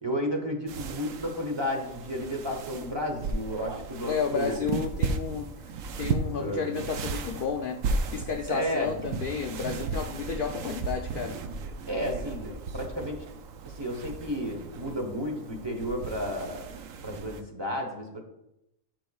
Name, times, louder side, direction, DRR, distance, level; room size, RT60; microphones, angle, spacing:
voice 1, 0.0-4.6 6.3-6.7 8.5-8.9 11.9-13.2 13.6-16.7 17.0-18.2, equal, 20° right, 2 dB, 1.0 m, -32 dB
sound 1, 0.7-17.4, right 4 dB, 85° right, 1.0 m, -35 dB
voice 2, 4.1-7.8 8.1-11.4, left 6 dB, 60° left, 4 dB, 0.6 m, -32 dB
11.5 x 5.9 x 2.3 m, 0.85 s
omnidirectional pair, 1.4 m